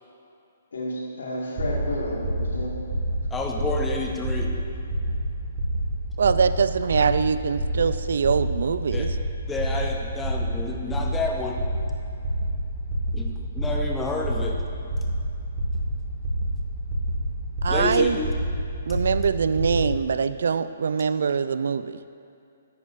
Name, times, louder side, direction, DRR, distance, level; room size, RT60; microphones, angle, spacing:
voice 1, 0.7-2.7, left 1 dB, 90° left, -2 dB, 1.8 m, -31 dB
sound 1, 1.6-20.0, right 1 dB, 40° right, 1.5 m, -28 dB
voice 2, 3.3-4.5 8.9-9.1 9.5-11.6 13.1-14.5 17.7-18.3, left 3 dB, 10° left, 0 dB, 0.6 m, -30 dB
voice 3, 6.2-9.2 17.6-18.2 18.9-22.0, right 6 dB, 75° right, 13 dB, 0.3 m, -23 dB
10.5 x 8.2 x 2.6 m, 2.6 s
hypercardioid pair, 155°, 0 cm